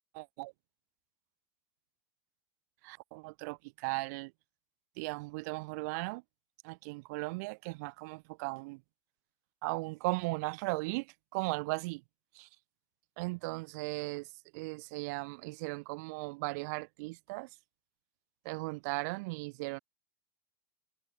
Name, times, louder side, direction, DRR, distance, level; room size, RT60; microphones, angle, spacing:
voice 1, 0.1-0.5 2.8-4.3 5.0-6.2 6.6-8.8 9.6-12.0 12.3-12.5 13.2-17.5 18.4-19.8, right 26 dB, 65° right, 0.9 m, -37 dB
hypercardioid pair, 110°, 10 cm